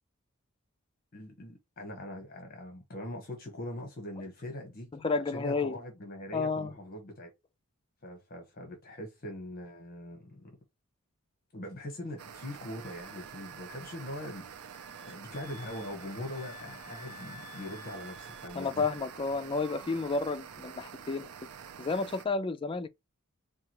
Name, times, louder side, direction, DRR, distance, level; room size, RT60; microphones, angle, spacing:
voice 1, 1.1-7.3 8.0-10.5 11.5-18.9, left 1 dB, 40° left, 1.0 m, -42 dB
voice 2, 5.0-5.8 6.3-6.7 18.6-21.3 21.8-22.9, left 4 dB, 25° left, 0.4 m, -31 dB
sound 1, 12.2-22.3, right 7 dB, 85° right, 0.5 m, -47 dB
Wind instrument woodwind instrument, 12.8-19.2 19.5-20.2, left 1 dB, 55° right, 1.0 m, -53 dB
4.6 x 2.4 x 2.9 m
head